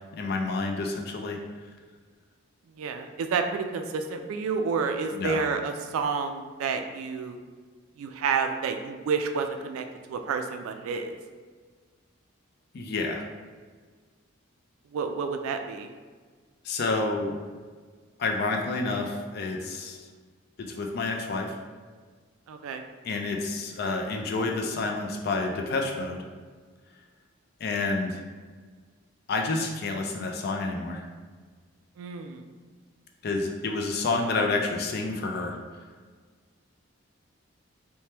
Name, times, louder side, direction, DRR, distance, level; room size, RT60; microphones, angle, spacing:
voice 1, 0.1-1.4 5.1-5.4 12.7-13.2 16.6-17.4 18.2-20.0 20.6-21.6 23.0-26.2 27.6-28.2 29.3-31.0 33.2-35.6, left 3 dB, 50° left, 2 dB, 0.3 m, -29 dB
voice 2, 2.8-7.4 8.0-11.2 14.9-15.9 22.5-22.8 32.0-32.4, right 5 dB, 85° right, 6 dB, 0.3 m, -30 dB
2.8 x 2.1 x 3.2 m, 1.5 s
head